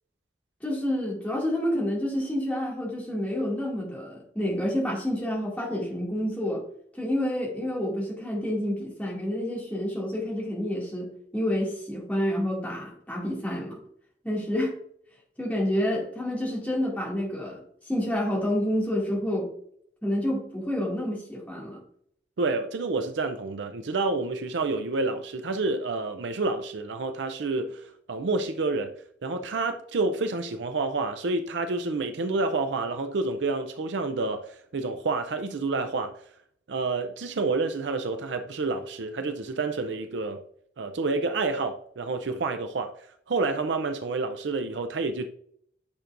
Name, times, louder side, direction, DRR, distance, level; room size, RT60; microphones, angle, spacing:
voice 1, 0.6-6.6 6.9-13.8 14.2-14.7 15.4-17.6 17.8-19.5 20.0-21.8, left 1 dB, 10° left, 2.2 m, -28 dB
voice 2, 22.4-28.9 29.2-36.1 36.7-40.4 40.8-42.9 43.3-45.3, right 3 dB, 90° right, 0.5 m, -29 dB
9.5 x 6.0 x 2.5 m
head